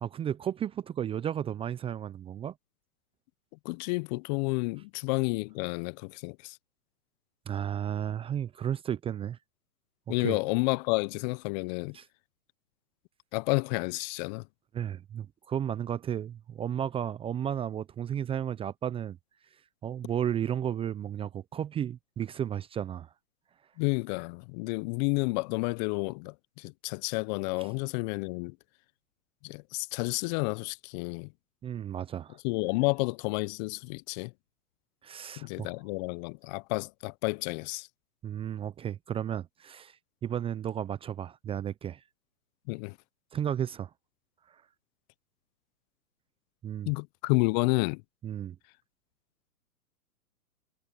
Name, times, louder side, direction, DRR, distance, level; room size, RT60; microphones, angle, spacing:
voice 1, 0.0-2.5 7.5-9.4 10.1-10.4 11.9-12.0 14.7-19.2 19.8-23.1 31.6-32.4 35.0-35.7 38.2-42.0 43.3-43.9 44.5-44.6 46.6-46.9 48.2-48.6, right 9 dB, 10° right, 0.8 m, -33 dB
voice 2, 3.6-6.6 10.1-12.0 13.3-14.5 23.8-28.6 29.4-31.3 32.4-34.3 35.4-37.9 42.7-43.0 46.9-48.0, left 28 dB, 30° left, 0.9 m, -30 dB
hypercardioid pair, 120°, 45 cm